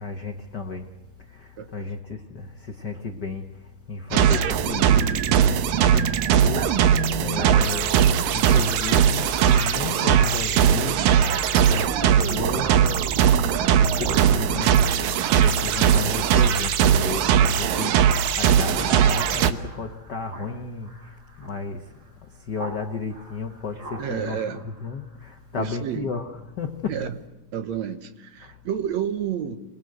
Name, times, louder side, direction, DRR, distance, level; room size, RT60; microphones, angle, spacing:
voice 1, 0.0-0.8 1.7-2.4 2.8-3.4 3.9-4.9 5.8-6.6 7.2-8.0 8.3-10.9 11.7-12.8 14.0-14.8 15.4-17.9 18.4-20.9 21.4-21.8 22.5-24.4 24.6-25.0 25.5-26.3 26.6-27.0, left 4 dB, 75° left, 0.9 m, -32 dB
voice 2, 1.6-1.9 24.0-24.7 25.5-26.2 26.9-27.2 27.5-29.6, right 8 dB, 65° right, 2.0 m, -30 dB
sound 1, 4.1-19.5, right 8 dB, 85° right, 2.7 m, -20 dB
Speech synthesizer, 11.5-22.8 23.1-25.3, right 2 dB, 35° right, 7.3 m, -44 dB
27.0 x 19.5 x 7.9 m
omnidirectional pair, 3.9 m